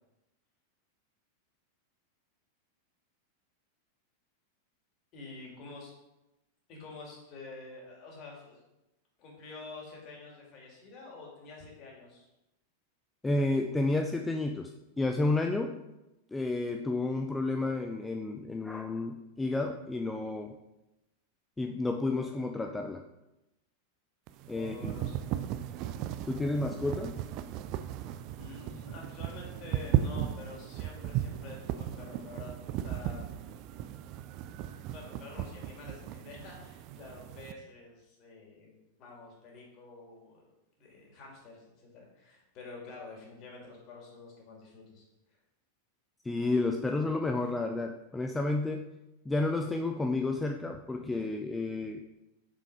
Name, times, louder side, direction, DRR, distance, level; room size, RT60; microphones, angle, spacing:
voice 1, 5.1-5.9 6.7-8.6 9.2-12.3 24.5-25.5 27.9-28.1 28.3-33.3 34.9-40.5 40.8-45.4, left 3 dB, 40° left, -1 dB, 2.8 m, -48 dB
voice 2, 13.2-14.7 15.0-15.8 16.3-20.6 21.6-23.0 24.5-24.9 26.2-27.2 46.2-48.8 49.3-52.0, left 2 dB, 10° left, 5 dB, 0.5 m, -31 dB
sound 1, 24.3-37.5, right 11 dB, 40° right, 0.4 m, -36 dB
6.8 x 6.0 x 4.8 m, 0.96 s
figure-of-eight pair, 90°, 0 cm